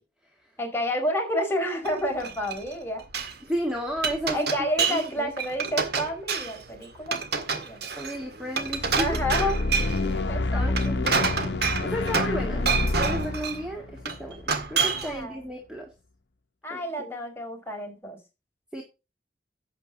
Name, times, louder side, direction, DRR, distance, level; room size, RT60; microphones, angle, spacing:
voice 1, 0.6-3.0 4.3-7.8 8.9-9.6 10.3-10.9 14.9-15.5 16.6-18.2, equal, 15° left, 1 dB, 4.5 m, -30 dB
Glass, 1.8-3.3 3.8-5.1 5.4-6.6 7.1-10.0 10.6-12.4 12.7-13.6 14.1-15.2, right 5 dB, 60° right, 1.8 m, -28 dB
voice 2, 3.5-4.5 4.9-5.3 7.9-9.2 10.1-11.5 11.8-15.9 16.7-17.1 18.7-18.8, equal, 5° right, 1 dB, 1.9 m, -33 dB
sound 1, 8.6-15.0, left 2 dB, 65° left, 0.7 m, -28 dB
11.5 x 8.1 x 3.9 m, 0.27 s
head